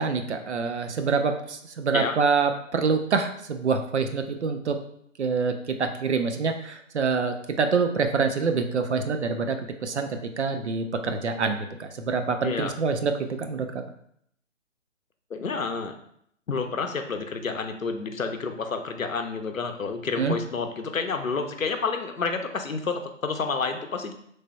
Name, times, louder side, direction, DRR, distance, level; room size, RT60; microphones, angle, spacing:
voice 1, 0.0-4.8 5.2-9.6 9.8-13.7 20.2-20.4, right 5 dB, 60° right, 6 dB, 0.5 m, -26 dB
voice 2, 15.3-15.9 16.5-24.1, left 4 dB, 90° left, 6 dB, 0.6 m, -29 dB
3.2 x 2.2 x 4.1 m, 0.70 s
figure-of-eight pair, 140°, 39 cm